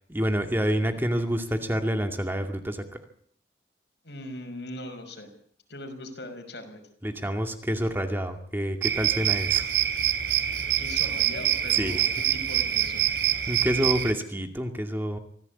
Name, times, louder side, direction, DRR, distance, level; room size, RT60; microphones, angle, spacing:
voice 1, 0.1-2.8 7.0-9.7 11.8-12.0 13.5-15.2, equal, 10° right, 5 dB, 2.4 m, -28 dB
voice 2, 4.0-5.3 5.7-6.8 10.8-13.0, left 1 dB, 75° left, 7 dB, 5.9 m, -40 dB
sound 1, 8.8-14.1, right 11 dB, 85° right, 3.0 m, -25 dB
26.0 x 16.5 x 8.5 m, 0.62 s
head